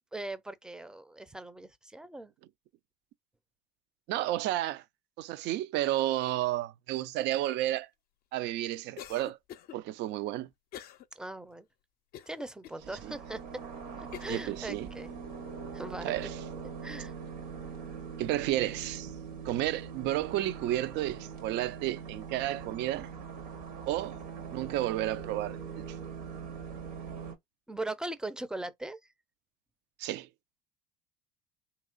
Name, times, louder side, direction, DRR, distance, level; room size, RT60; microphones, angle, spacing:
voice 1, 0.1-2.3 11.2-11.7 12.3-13.6 14.0-15.1 15.7-16.2 16.8-17.1 27.7-29.0, right 2 dB, 5° right, 0.5 m, -40 dB
voice 2, 4.1-4.8 5.2-7.9 8.3-9.4 9.7-10.5 13.0-13.1 14.3-14.9 16.0-16.3 18.2-19.1 19.4-23.1 23.9-24.2 24.5-25.8 30.0-30.3, right 14 dB, 60° right, 0.4 m, -32 dB
Cough, 9.0-9.8 10.7-11.1 11.5-11.6 12.1-12.8 13.4-13.5 14.1-14.4, left 10 dB, 50° left, 0.5 m, -45 dB
sound 1, 12.8-27.3, right 6 dB, 75° right, 1.3 m, -42 dB
3.0 x 2.9 x 2.4 m
hypercardioid pair, 75°, 21 cm